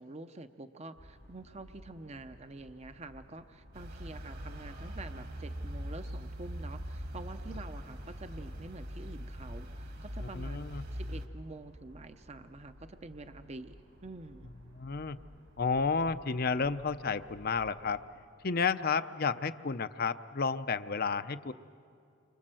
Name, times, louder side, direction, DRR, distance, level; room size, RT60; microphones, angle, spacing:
voice 1, 0.0-14.5, right 2 dB, 35° right, 9 dB, 0.7 m, -47 dB
sound 1, 1.0-18.1, equal, 85° right, 7.3 m, -56 dB
sound 2, 3.7-11.2, equal, 50° right, 1.8 m, -41 dB
voice 2, 10.3-10.8 14.7-15.2 15.6-18.0 18.4-21.5, left 5 dB, 50° left, 11 dB, 0.7 m, -31 dB
30.0 x 25.5 x 7.7 m, 2.4 s
head